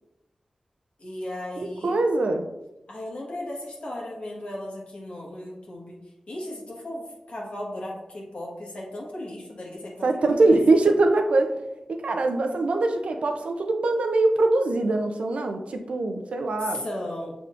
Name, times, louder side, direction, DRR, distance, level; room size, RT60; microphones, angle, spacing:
voice 1, 1.0-2.0 2.9-6.0 6.3-10.6 16.6-17.3, left 1 dB, 70° left, -3 dB, 1.3 m, -36 dB
voice 2, 1.6-2.5 10.0-11.6 11.9-16.8, right 2 dB, 85° right, 5 dB, 0.5 m, -22 dB
6.0 x 3.5 x 2.5 m, 0.93 s
cardioid pair, 50°, 2 cm